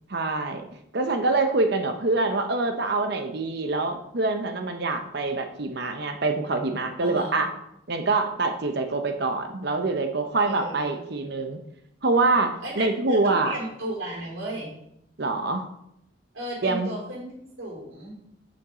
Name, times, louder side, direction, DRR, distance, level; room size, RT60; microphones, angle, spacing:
voice 1, 0.1-0.6 0.9-7.5 7.9-11.6 12.0-13.5 15.2-15.7 16.6-16.9, right 3 dB, 50° right, 6 dB, 0.8 m, -25 dB
voice 2, 7.0-7.5 10.4-11.0 12.6-14.8 16.3-18.2, right 1 dB, 75° right, -5 dB, 3.8 m, -35 dB
7.1 x 6.3 x 5.0 m, 0.77 s
head